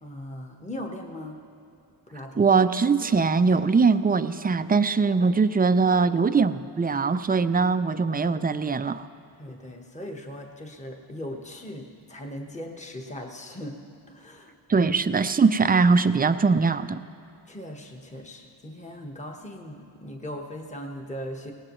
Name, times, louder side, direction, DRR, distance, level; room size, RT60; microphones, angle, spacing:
voice 1, 0.0-1.4 2.1-2.5 9.4-13.8 14.1-14.9 17.5-21.5, left 1 dB, 15° left, 1 dB, 1.3 m, -39 dB
voice 2, 2.4-9.1 14.7-17.0, right 4 dB, 20° right, 12 dB, 0.4 m, -21 dB
19.5 x 18.0 x 3.1 m, 2.5 s
cardioid pair, 80°, 43 cm